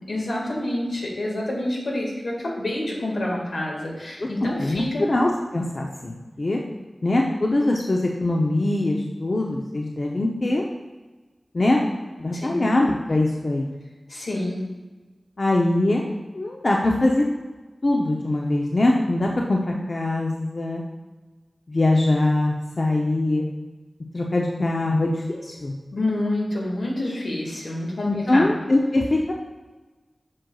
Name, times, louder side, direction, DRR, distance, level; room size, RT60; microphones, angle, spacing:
voice 1, 0.1-5.1 12.3-12.6 14.1-14.6 25.9-28.5, left 1 dB, 85° left, -3 dB, 1.7 m, -27 dB
voice 2, 4.2-6.6 7.0-10.6 11.5-11.8 12.2-13.7 15.4-16.1 16.3-17.2 17.8-20.8 21.7-23.5 24.1-25.7 28.1-29.3, left 2 dB, 50° left, 0 dB, 0.6 m, -22 dB
7.5 x 6.2 x 2.3 m, 1.2 s
wide cardioid pair, 90°, 0 cm